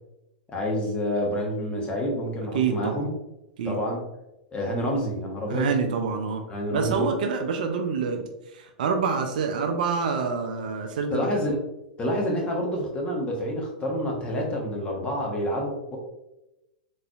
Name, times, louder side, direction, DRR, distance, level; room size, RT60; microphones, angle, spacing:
voice 1, 0.5-3.1 3.6-4.0 4.5-5.7 6.5-7.1 11.1-11.6 12.0-16.0, equal, 20° left, -1 dB, 1.0 m, -28 dB
voice 2, 2.5-3.1 3.6-3.8 5.5-11.3, right 5 dB, 65° right, 4 dB, 0.5 m, -27 dB
3.8 x 3.1 x 2.3 m, 0.94 s
figure-of-eight pair, 100°, 5 cm